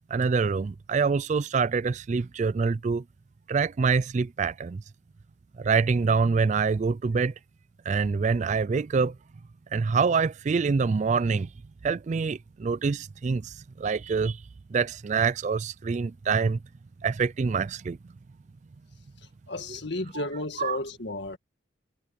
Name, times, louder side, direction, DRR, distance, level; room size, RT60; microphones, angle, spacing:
voice 1, 0.1-3.0 3.5-4.8 5.6-7.3 7.9-9.2 9.7-11.5 11.8-14.4 14.7-16.6 17.0-18.0 19.7-19.8 20.1-20.2 20.6-20.8, right 5 dB, 35° right, 0.3 m, -25 dB
voice 2, 19.5-21.4, left 2 dB, 60° left, 2.1 m, -33 dB
head